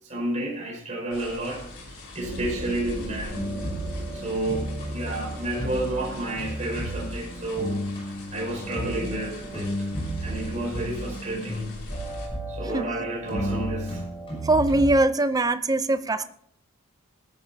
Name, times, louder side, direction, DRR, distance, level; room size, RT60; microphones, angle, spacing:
voice 1, 0.0-1.6 1.9-3.3 4.1-7.8 8.3-9.9 10.2-11.7 12.5-14.0, right 1 dB, 35° right, -1 dB, 5.2 m, -31 dB
sound 1, 1.1-12.3, left 2 dB, 65° left, 4.6 m, -44 dB
sound 2, 2.2-9.6, right 1 dB, 50° right, 4.5 m, -40 dB
sound 3, 3.3-15.0, equal, 25° left, 6.7 m, -33 dB
voice 2, 14.4-16.2, right 2 dB, 15° right, 11 dB, 0.5 m, -22 dB
19.5 x 13.0 x 2.8 m, 0.64 s
head